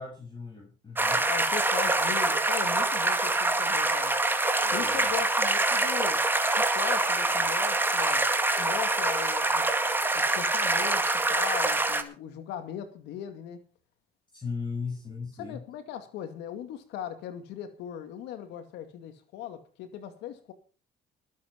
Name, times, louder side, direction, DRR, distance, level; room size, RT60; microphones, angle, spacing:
voice 1, 0.0-1.3 4.6-5.1 14.3-15.6, left 4 dB, 25° left, 7.4 m, -37 dB
sound 1, 1.0-12.0, right 2 dB, 10° right, 2.1 m, -25 dB
voice 2, 1.3-4.2 4.7-6.2 6.6-8.3 8.6-9.7 10.1-13.6 15.4-20.5, left 10 dB, 85° left, 2.3 m, -38 dB
20.5 x 8.6 x 5.3 m
cardioid pair, 110°, 17 cm